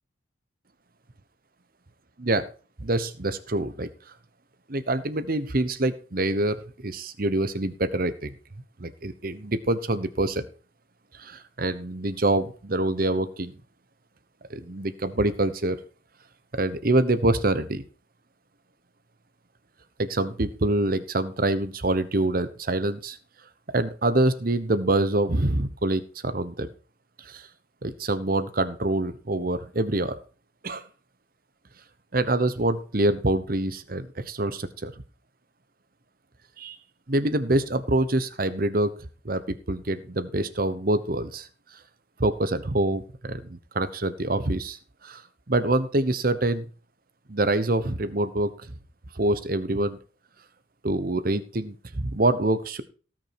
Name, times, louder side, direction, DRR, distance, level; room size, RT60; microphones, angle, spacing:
voice 1, 2.8-3.9 4.7-8.3 8.8-10.5 11.1-13.5 14.5-15.8 16.5-17.8 20.0-23.2 23.7-26.7 27.2-27.5 27.8-30.2 30.6-30.8 32.1-34.9 36.6-36.8 37.1-38.9 39.2-41.5 42.2-44.8 45.0-45.2 45.5-46.6 47.3-48.7 49.1-50.0 50.8-52.8, right 2 dB, 50° right, 13 dB, 1.0 m, -25 dB
18.0 x 6.3 x 4.7 m, 0.38 s
head